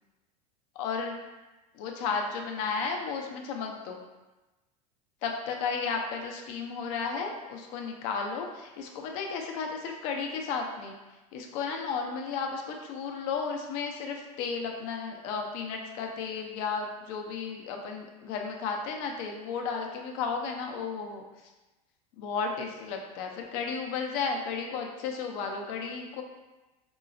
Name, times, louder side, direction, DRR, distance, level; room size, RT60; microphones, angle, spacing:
voice 1, 0.8-1.2 1.7-4.0 5.2-11.0 11.3-21.2 22.2-26.2, left 5 dB, 65° left, 2 dB, 0.6 m, -33 dB
3.7 x 2.0 x 2.5 m, 1.1 s
hypercardioid pair, 95°, 20 cm